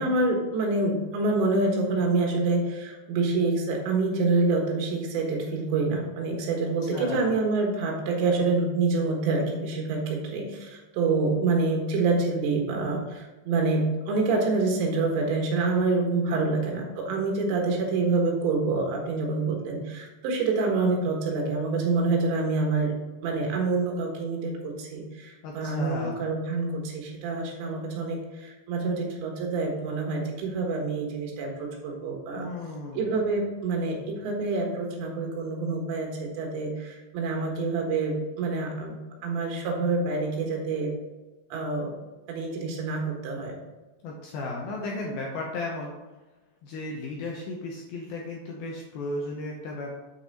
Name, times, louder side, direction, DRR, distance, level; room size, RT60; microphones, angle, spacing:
voice 1, 0.0-23.0 23.2-32.5 33.0-40.9 41.5-41.9 42.3-43.6, right 3 dB, 75° right, 1 dB, 3.6 m, -27 dB
voice 2, 6.9-7.3 25.4-26.2 32.3-33.1 44.0-45.9 46.6-49.9, left 2 dB, 75° left, -2 dB, 2.3 m, -34 dB
8.0 x 5.8 x 4.2 m, 1.1 s
omnidirectional pair, 5.3 m